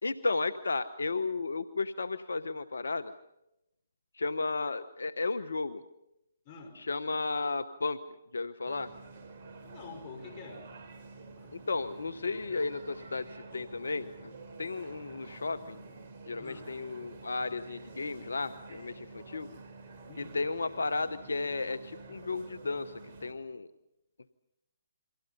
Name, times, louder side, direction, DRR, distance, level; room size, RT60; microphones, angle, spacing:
voice 1, 0.0-3.1 4.1-5.8 6.7-8.0 8.3-8.9 11.5-14.3 14.6-15.8 16.3-19.5 20.2-22.9 23.2-23.7, left 3 dB, 80° left, 13 dB, 0.9 m, -34 dB
voice 2, 6.4-6.8 9.6-10.7 11.4-11.5 16.4-16.7 20.0-20.4, left 4 dB, 35° left, 6 dB, 5.1 m, -47 dB
sound 1, 8.6-23.3, right 3 dB, 45° right, 4.0 m, -49 dB
29.0 x 24.0 x 5.6 m, 0.89 s
figure-of-eight pair, 140°, 0 cm